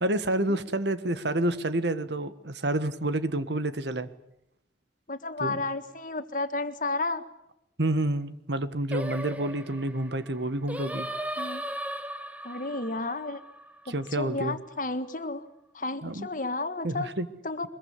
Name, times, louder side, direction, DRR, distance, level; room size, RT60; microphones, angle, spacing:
voice 1, 0.0-4.1 5.4-5.6 7.8-11.1 13.9-14.6 16.0-16.3 16.8-17.3, right 1 dB, 70° right, 12 dB, 1.7 m, -29 dB
voice 2, 5.1-7.2 11.4-11.7 12.4-13.4 13.9-15.5 15.7-17.1 17.4-17.7, left 2 dB, 45° left, 10 dB, 1.7 m, -32 dB
Singing, 8.9-14.2, right 1 dB, 10° right, 1.2 m, -37 dB
24.0 x 22.5 x 8.4 m, 0.81 s
head